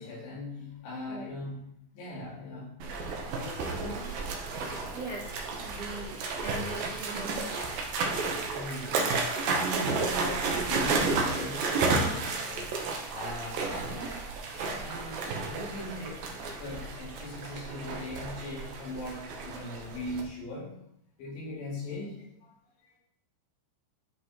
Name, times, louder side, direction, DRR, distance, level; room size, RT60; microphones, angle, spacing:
voice 1, 0.0-2.8 3.3-4.1 8.5-20.8 21.2-22.5 22.8-22.9, left 1 dB, 70° left, -5 dB, 4.9 m, -40 dB
sound 1, 2.8-20.2, right 3 dB, 70° right, 2.2 m, -32 dB
voice 2, 4.9-5.4 5.6-7.4, right 2 dB, 50° right, -8 dB, 1.0 m, -41 dB
13.0 x 5.0 x 4.3 m, 0.76 s
omnidirectional pair, 5.6 m